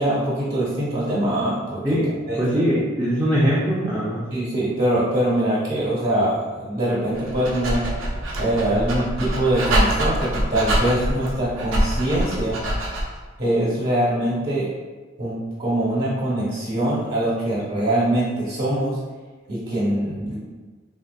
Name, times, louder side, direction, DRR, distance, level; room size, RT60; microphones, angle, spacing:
voice 1, 0.0-2.0 2.3-2.4 4.3-7.8 8.4-12.6 13.4-14.7 15.2-19.0 19.5-20.4, right 1 dB, 50° right, -9 dB, 0.9 m, -23 dB
voice 2, 1.8-4.2, equal, 10° right, -8 dB, 0.4 m, -21 dB
Dog, 7.1-13.2, right 1 dB, 70° right, 0.5 m, -25 dB
3.3 x 2.5 x 2.2 m, 1.3 s
head